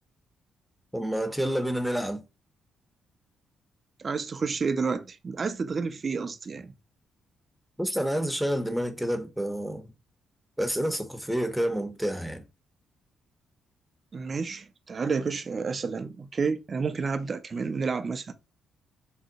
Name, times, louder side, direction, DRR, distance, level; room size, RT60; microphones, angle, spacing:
voice 1, 0.9-2.2 7.8-9.9 10.6-12.4, equal, ahead, 0.7 m, -29 dB
voice 2, 4.0-6.7 14.1-18.3, right 5 dB, 45° right, 0.4 m, -30 dB
3.8 x 2.0 x 2.6 m
supercardioid pair, 60°, 0 cm